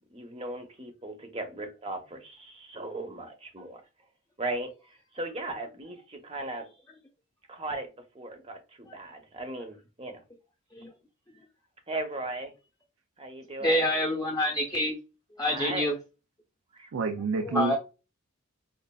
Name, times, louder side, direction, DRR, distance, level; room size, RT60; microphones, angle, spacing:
voice 1, 0.1-3.8 4.4-4.7 5.1-6.7 7.5-7.9 8.1-10.2 11.9-12.5 13.2-13.8 15.5-15.9 16.7-16.9, right 2 dB, 25° right, 0.7 m, -37 dB
voice 2, 13.6-15.0 15.3-16.0 17.4-17.8, left 1 dB, 20° left, 0.7 m, -27 dB
voice 3, 16.9-17.8, right 4 dB, 80° right, 0.5 m, -28 dB
5.1 x 2.4 x 2.2 m
head